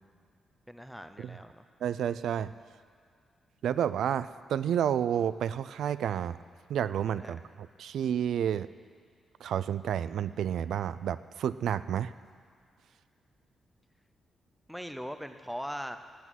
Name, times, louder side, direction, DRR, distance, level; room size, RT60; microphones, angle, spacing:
voice 1, 0.7-1.6 7.2-7.4 14.7-16.0, equal, ahead, 8 dB, 0.6 m, -40 dB
voice 2, 1.8-2.5 3.6-6.4 6.7-8.7 9.4-12.1, right 9 dB, 80° right, 15 dB, 0.4 m, -30 dB
17.0 x 8.3 x 9.3 m, 2.1 s
wide cardioid pair, 170°, 0 cm